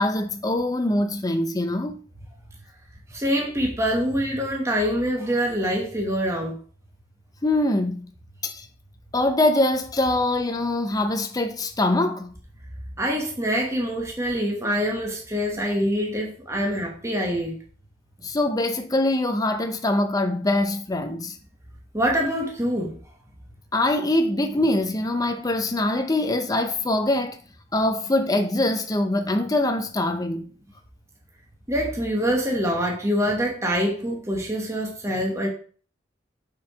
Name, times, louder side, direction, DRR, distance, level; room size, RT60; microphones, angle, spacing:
voice 1, 0.0-2.0 7.4-8.0 8.4-8.7 9.1-12.3 18.2-21.4 23.7-27.4 27.7-30.4, left 1 dB, 20° left, 0.6 m, -23 dB
voice 2, 3.1-6.6 13.0-17.6 21.9-22.9 31.7-35.5, equal, 15° right, 1.2 m, -25 dB
6.0 x 4.6 x 4.8 m
head